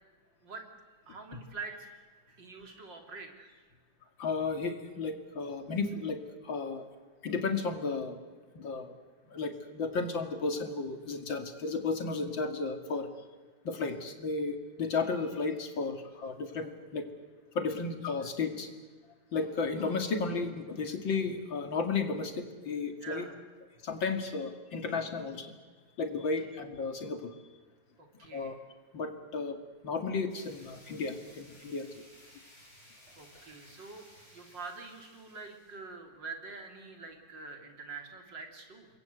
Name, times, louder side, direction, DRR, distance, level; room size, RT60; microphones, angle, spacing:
voice 1, 1.1-2.0 2.3-3.6 23.0-23.4 28.0-28.6 33.2-34.1 34.3-38.9, right 4 dB, 65° right, 3 dB, 4.0 m, -45 dB
voice 2, 4.2-6.9 7.2-8.2 8.5-9.0 9.3-13.1 13.6-17.1 17.5-18.7 19.3-23.3 23.8-25.5 26.0-27.3 28.3-28.6 28.9-29.6 29.8-31.9, left 4 dB, 75° left, 6 dB, 3.1 m, -33 dB
sound 1, 30.3-35.8, equal, 35° left, 7.7 m, -58 dB
28.0 x 22.0 x 8.1 m, 1.4 s
omnidirectional pair, 2.1 m